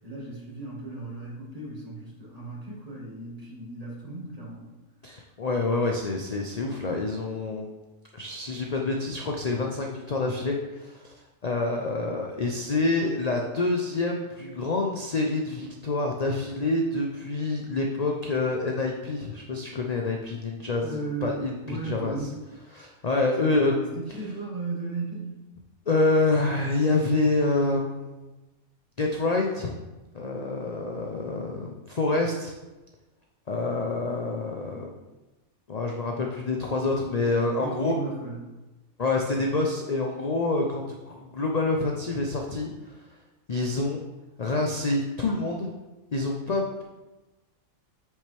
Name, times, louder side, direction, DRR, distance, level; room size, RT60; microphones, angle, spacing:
voice 1, 0.0-4.7 20.8-21.4 21.6-22.3 23.4-23.7 23.9-25.3 37.0-38.4, right 3 dB, 25° right, -5 dB, 2.2 m, -36 dB
voice 2, 5.0-7.7 8.1-11.1 11.4-22.2 22.7-23.9 25.9-28.3 29.0-29.7 30.1-32.5 33.5-34.9 35.7-37.9 39.0-42.7 43.5-44.0 44.4-45.7 46.1-46.8, left 2 dB, 40° left, 1 dB, 0.6 m, -27 dB
8.5 x 6.6 x 3.4 m, 1.1 s
omnidirectional pair, 1.5 m